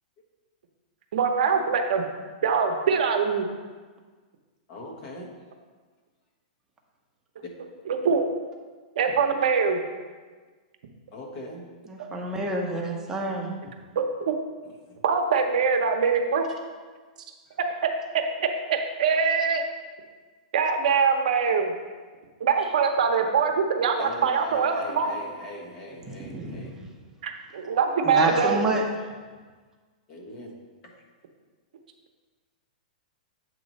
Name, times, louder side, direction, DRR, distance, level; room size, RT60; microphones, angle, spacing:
voice 1, 1.1-2.0 2.4-3.5 7.9-8.2 9.0-9.8 14.0-14.4 15.0-16.4 18.4-19.6 20.5-21.7 22.4-25.1 27.2-28.6, right 5 dB, 70° right, 4 dB, 0.8 m, -23 dB
voice 2, 4.7-5.3 11.1-11.6 14.6-15.0 24.0-26.8 28.0-28.6 30.1-30.6, left 2 dB, 40° left, 0 dB, 1.2 m, -40 dB
voice 3, 11.9-13.5 26.2-26.7 28.0-28.8, right 2 dB, 10° right, 0 dB, 0.8 m, -28 dB
7.9 x 3.0 x 5.3 m, 1.4 s
hypercardioid pair, 150°, 4 cm